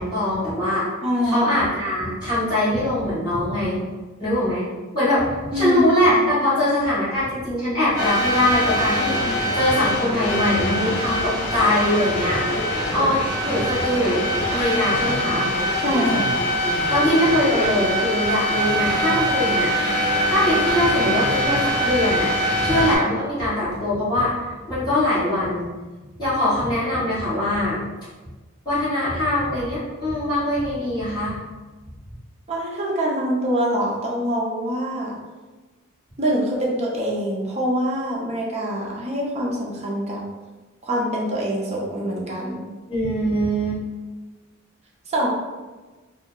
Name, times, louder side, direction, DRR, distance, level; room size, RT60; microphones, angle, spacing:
voice 1, 0.0-0.8 1.2-3.8 4.2-4.6 4.9-15.5 16.9-19.7 20.3-22.3 22.6-25.7 26.2-27.8 28.6-31.3 42.9-43.8, left 1 dB, 20° left, -14 dB, 1.3 m, -22 dB
voice 2, 1.0-1.5 5.5-5.8 6.2-6.3 15.8-16.3 32.5-35.1 36.2-40.2 40.8-42.7 45.1-45.3, equal, 30° right, -3 dB, 0.6 m, -24 dB
sound 1, 8.0-23.0, equal, 55° left, 1.0 m, -23 dB
2.6 x 2.1 x 3.7 m, 1.3 s
head